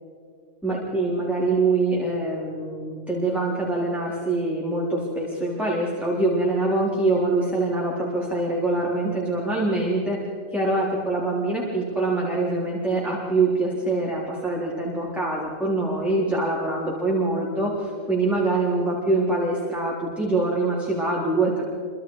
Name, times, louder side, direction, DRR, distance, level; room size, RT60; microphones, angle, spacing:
voice 1, 0.6-10.2 10.5-21.6, right 2 dB, ahead, -5 dB, 3.7 m, -24 dB
27.5 x 25.0 x 4.8 m, 2.3 s
omnidirectional pair, 1.7 m